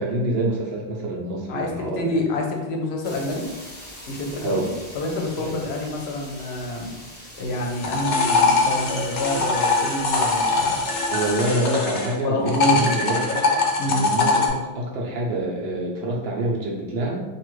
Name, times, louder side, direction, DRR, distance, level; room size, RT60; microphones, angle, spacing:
voice 1, 0.0-2.1 4.4-4.8 5.4-5.6 11.1-13.5 13.8-17.2, right 1 dB, 70° right, -1 dB, 0.9 m, -26 dB
voice 2, 1.5-3.4 4.1-4.6 4.9-7.0 7.4-10.8 12.2-12.8 13.8-14.1, left 1 dB, 85° left, 1 dB, 0.9 m, -27 dB
sound 1, 3.0-11.5, equal, 10° left, 0.7 m, -43 dB
sound 2, 7.5-12.1 12.5-14.5, left 4 dB, 55° left, 0.6 m, -22 dB
2.7 x 2.4 x 3.0 m, 1.1 s
omnidirectional pair, 1.1 m